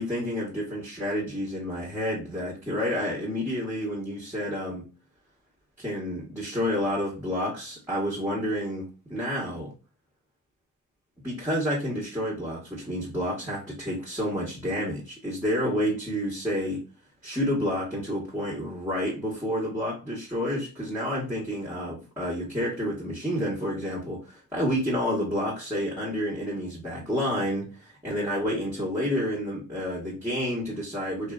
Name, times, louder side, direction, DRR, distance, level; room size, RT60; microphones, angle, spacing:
voice 1, 0.0-4.8 5.8-9.7 11.2-16.8 17.2-31.3, equal, 10° right, -5 dB, 1.1 m, -29 dB
2.7 x 2.5 x 2.3 m, 0.33 s
cardioid pair, 65°, 34 cm